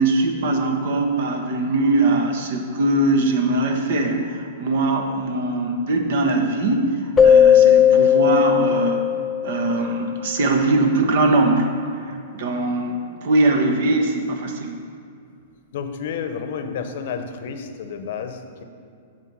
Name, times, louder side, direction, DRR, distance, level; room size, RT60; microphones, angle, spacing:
voice 1, 0.0-9.0 9.4-14.8, right 2 dB, 65° right, 4 dB, 1.1 m, -21 dB
Keyboard (musical), 7.2-9.9, left 9 dB, 20° left, 0.3 m, -15 dB
voice 2, 15.7-18.6, left 6 dB, 65° left, 7 dB, 0.8 m, -31 dB
8.4 x 4.6 x 6.2 m, 2.3 s
hypercardioid pair, 130°, 0 cm